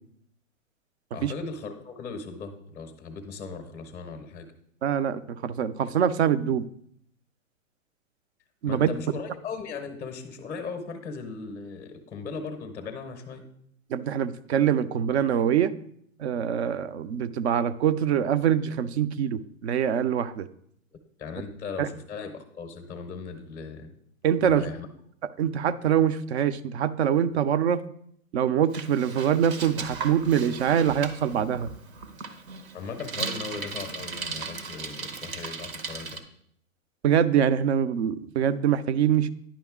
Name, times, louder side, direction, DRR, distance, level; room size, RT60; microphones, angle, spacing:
voice 1, 1.1-4.5 8.6-13.5 21.2-23.9 24.4-24.9 32.7-36.2, left 5 dB, 5° left, 6 dB, 0.6 m, -38 dB
voice 2, 4.8-6.7 8.6-8.9 13.9-15.7 16.2-20.5 21.8-21.9 24.2-24.6 25.4-27.8 28.3-31.7 37.0-39.3, right 9 dB, 55° right, 15 dB, 0.5 m, -24 dB
Bicycle, 28.7-36.2, right 4 dB, 75° right, 1.1 m, -37 dB
10.0 x 5.3 x 3.6 m, 0.69 s
hypercardioid pair, 145°, 41 cm